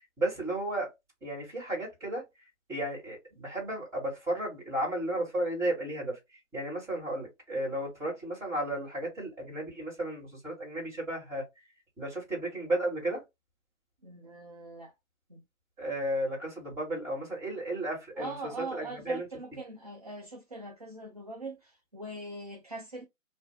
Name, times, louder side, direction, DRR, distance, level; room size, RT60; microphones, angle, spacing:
voice 1, 0.2-0.9 1.2-2.2 2.7-6.2 6.5-11.4 12.0-13.2 15.8-19.3, right 1 dB, 10° right, 1.8 m, -33 dB
voice 2, 14.0-14.9 15.3-15.4 18.2-23.0, right 2 dB, 30° right, 0.4 m, -42 dB
3.1 x 2.4 x 2.8 m
hypercardioid pair, 150°, 40 cm